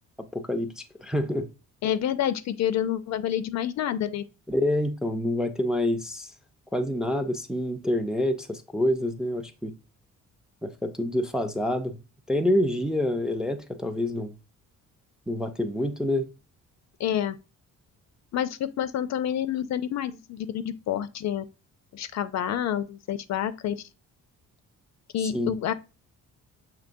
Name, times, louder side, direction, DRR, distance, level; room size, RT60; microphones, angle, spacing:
voice 1, 0.3-1.5 4.5-6.3 6.7-9.7 10.6-12.0 12.3-14.3 15.3-16.3 25.2-25.5, left 1 dB, ahead, 0.4 m, -27 dB
voice 2, 1.8-4.2 17.0-17.4 18.3-21.5 21.9-23.8 25.1-25.7, left 10 dB, 60° left, 0.4 m, -28 dB
6.6 x 2.9 x 2.5 m
cardioid pair, 115°, 31 cm